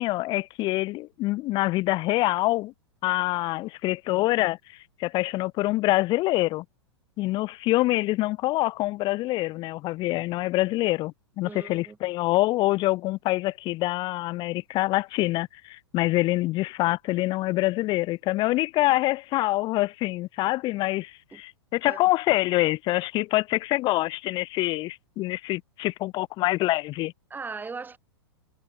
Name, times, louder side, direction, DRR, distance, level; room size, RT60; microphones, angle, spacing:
voice 1, 0.0-2.7 3.0-4.6 5.0-6.6 7.2-27.1, left 18 dB, 30° left, 0.6 m, -25 dB
voice 2, 11.5-12.0 21.3-21.4 21.8-22.0 27.3-28.0, right 4 dB, 15° right, 6.9 m, -38 dB
figure-of-eight pair, 100°, 14 cm